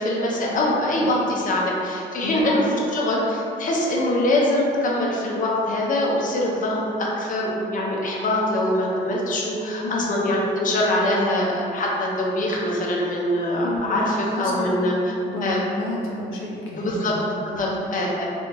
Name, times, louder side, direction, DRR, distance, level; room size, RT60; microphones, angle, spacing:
voice 1, 0.0-2.6 2.9-14.9 15.4-15.6 16.8-17.2 17.6-18.3, left 1 dB, 40° left, -4 dB, 0.7 m, -23 dB
voice 2, 9.8-10.1 13.6-14.8 15.3-17.9, left 1 dB, 85° left, -4 dB, 0.6 m, -31 dB
2.7 x 2.5 x 3.8 m, 2.6 s
cardioid pair, 90°, 20 cm